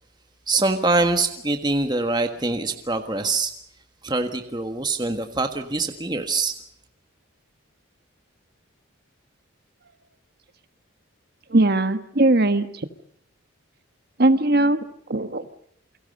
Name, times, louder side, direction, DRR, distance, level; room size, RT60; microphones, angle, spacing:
voice 1, 0.5-3.5 4.0-6.5, right 3 dB, 20° right, 7 dB, 1.5 m, -24 dB
voice 2, 11.5-12.7 14.2-14.8 15.1-15.4, right 2 dB, 45° right, 11 dB, 1.5 m, -19 dB
29.0 x 23.5 x 5.4 m, 0.69 s
head